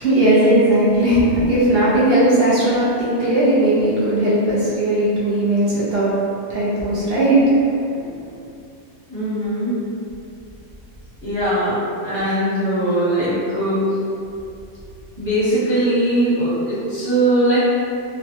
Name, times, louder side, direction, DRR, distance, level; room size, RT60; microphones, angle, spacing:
voice 1, 0.0-6.2 6.5-7.4 8.0-8.1, right 1 dB, 80° right, -8 dB, 0.5 m, -17 dB
voice 2, 9.1-9.7 11.2-14.0 15.2-17.6, right 1 dB, 35° left, -13 dB, 1.5 m, -20 dB
3.2 x 2.1 x 2.7 m, 2.5 s
omnidirectional pair, 1.7 m